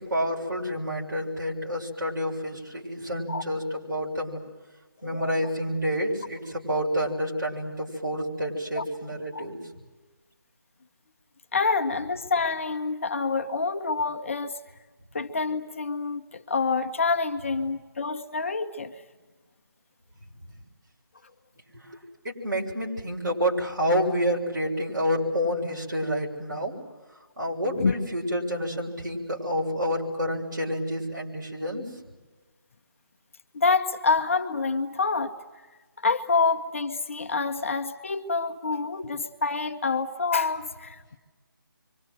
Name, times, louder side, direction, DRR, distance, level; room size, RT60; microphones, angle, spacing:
voice 1, 0.0-4.4 5.0-9.6 21.7-26.7 27.4-31.8, equal, 55° right, 6.7 m, -29 dB
voice 2, 5.0-5.5 8.8-8.9 9.3-9.5 11.5-14.6 15.1-18.9 27.8-28.0 33.5-35.3 36.0-41.2, left 4 dB, 35° left, 1.0 m, -27 dB
27.5 x 25.0 x 7.9 m
figure-of-eight pair, 170°, 12 cm